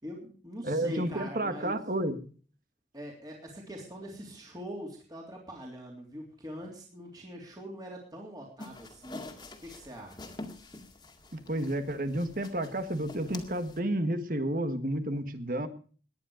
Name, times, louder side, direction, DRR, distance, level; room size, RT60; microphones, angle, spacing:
voice 1, 0.0-1.8 2.9-9.2 9.6-10.3, equal, 25° right, -1 dB, 3.4 m, -43 dB
voice 2, 0.6-2.2 11.3-15.7, right 1 dB, 50° right, 9 dB, 1.7 m, -31 dB
sound 1, 8.6-13.8, left 2 dB, 25° left, 2.1 m, -47 dB
18.5 x 10.5 x 5.1 m, 0.41 s
head